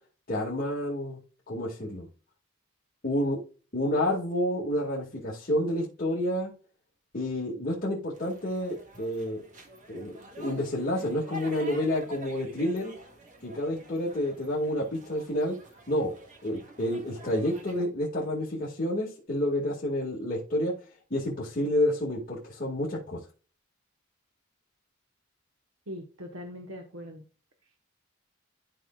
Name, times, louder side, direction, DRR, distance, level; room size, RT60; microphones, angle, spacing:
voice 1, 0.3-1.2 1.5-2.1 3.0-3.4 3.7-6.5 7.1-9.4 9.9-12.9 13.4-15.6 15.9-16.1 16.4-20.7 21.1-23.2, left 1 dB, 45° left, -5 dB, 2.1 m, -29 dB
sound 1, 8.1-17.8, right 1 dB, 40° right, 1.8 m, -48 dB
voice 2, 25.9-27.2, equal, 85° right, 2 dB, 1.3 m, -41 dB
13.0 x 4.5 x 2.4 m, 0.37 s
head